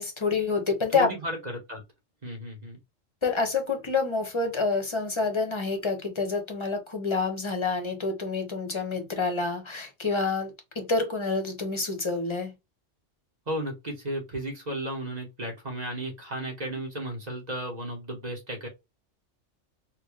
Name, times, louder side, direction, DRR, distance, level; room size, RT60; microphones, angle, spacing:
voice 1, 0.0-1.1 3.2-12.5, left 4 dB, 25° left, 1.0 m, -28 dB
voice 2, 0.9-1.8 2.2-2.8 13.5-18.7, right 1 dB, 35° right, 1.5 m, -34 dB
4.4 x 2.3 x 3.2 m
omnidirectional pair, 1.3 m